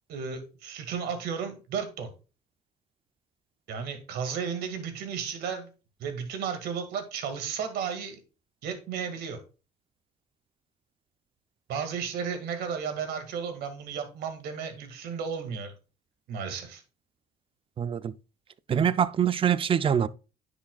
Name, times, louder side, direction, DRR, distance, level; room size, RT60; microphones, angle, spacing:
voice 1, 0.1-2.1 3.7-5.7 6.0-8.2 8.6-9.4 11.7-15.7 16.3-16.8, right 6 dB, 75° right, 2.0 m, -34 dB
voice 2, 17.8-18.1 18.7-20.1, right 8 dB, 30° right, 0.4 m, -24 dB
10.0 x 6.1 x 2.3 m
cardioid pair, 110°, 17 cm